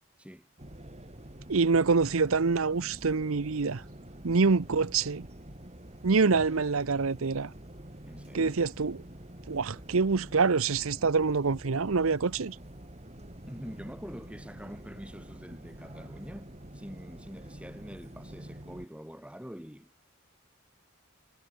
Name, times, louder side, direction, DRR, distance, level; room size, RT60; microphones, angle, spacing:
sound 1, 0.6-18.9, right 1 dB, 30° right, 3.8 m, -47 dB
voice 1, 1.5-3.8 4.2-5.3 6.0-7.5 8.3-9.0 9.5-12.6, right 4 dB, 75° right, 0.8 m, -26 dB
voice 2, 8.0-8.6 13.5-19.9, equal, 5° right, 5.5 m, -45 dB
head